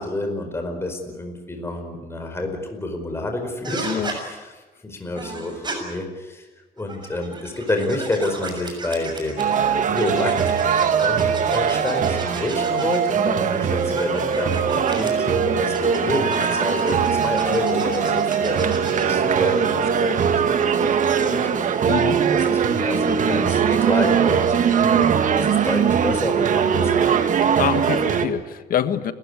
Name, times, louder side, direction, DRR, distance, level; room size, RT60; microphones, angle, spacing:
voice 1, 0.0-4.5 4.8-6.5 6.8-10.5 11.0-20.2 20.6-21.6 22.5-27.1, left 2 dB, 15° left, 4 dB, 4.8 m, -29 dB
sound 1, 3.6-4.2 5.1-5.8 6.8-9.6 9.9-13.1 13.8-15.1 15.7-19.2, right 3 dB, 25° right, 7.0 m, -34 dB
sound 2, 9.4-28.3, right 7 dB, 50° right, 1.8 m, -20 dB
voice 2, 21.9-22.2 27.4-29.1, left 9 dB, 55° left, 12 dB, 1.5 m, -25 dB
29.5 x 15.0 x 9.9 m, 1.3 s
cardioid pair, 110°, 17 cm